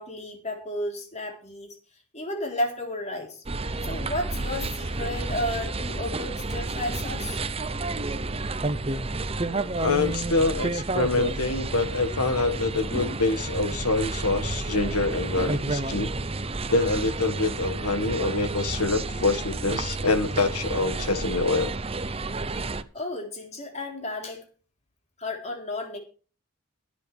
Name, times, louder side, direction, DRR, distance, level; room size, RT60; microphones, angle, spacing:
voice 1, 0.0-1.7 2.1-7.4 22.9-24.4 25.2-26.0, left 1 dB, 30° left, 2 dB, 3.8 m, -33 dB
sound 1, 3.5-22.8, right 2 dB, 25° right, 0.8 m, -30 dB
voice 2, 9.8-16.1 16.7-21.7, left 3 dB, 90° left, 9 dB, 1.8 m, -25 dB
23.0 x 8.2 x 3.5 m, 0.37 s
head